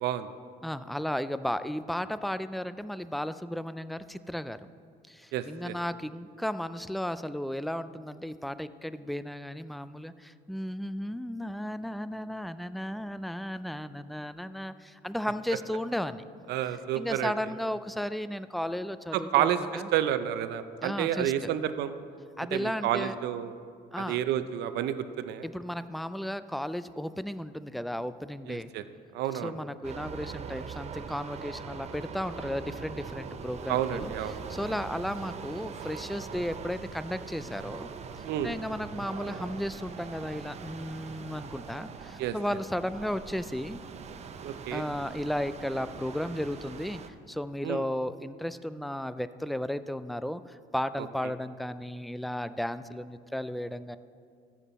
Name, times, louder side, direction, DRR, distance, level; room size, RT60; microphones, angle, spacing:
voice 1, 0.6-4.7 5.1-16.2 16.9-19.5 19.7-19.9 20.8-21.5 22.4-23.2 23.9-24.2 25.4-28.7 29.4-34.1 34.5-37.9 38.2-43.8 44.7-47.0 47.3-54.0, equal, ahead, 13 dB, 0.3 m, -34 dB
voice 2, 5.3-5.8 16.5-17.3 19.1-21.9 22.5-23.5 24.0-25.4 28.5-28.8 29.1-29.6 33.7-34.4 38.2-38.5 42.2-42.3 44.4-44.8 47.6-47.8, right 11 dB, 80° right, 11 dB, 0.6 m, -30 dB
sound 1, 29.8-47.1, right 6 dB, 40° right, 0.6 m, -42 dB
14.0 x 7.4 x 4.1 m, 2.3 s
cardioid pair, 110°, 17 cm